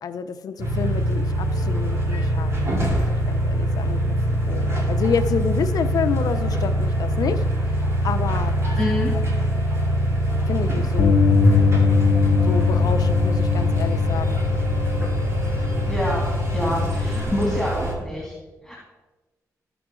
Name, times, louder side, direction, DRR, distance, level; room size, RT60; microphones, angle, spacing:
voice 1, 0.0-7.4 8.0-8.5 9.1-9.7 10.5-11.2 12.5-14.4, left 6 dB, 70° left, 9 dB, 0.7 m, -29 dB
sound 1, 0.6-17.9, equal, 45° right, 2.2 m, -23 dB
voice 2, 8.8-9.1 15.9-16.2 16.5-18.3 18.6-18.8, left 1 dB, ahead, -5 dB, 2.9 m, -26 dB
Bass guitar, 11.0-17.2, left 6 dB, 90° left, 1.1 m, -22 dB
14.5 x 5.9 x 3.8 m, 1.2 s
cardioid pair, 70°, 7 cm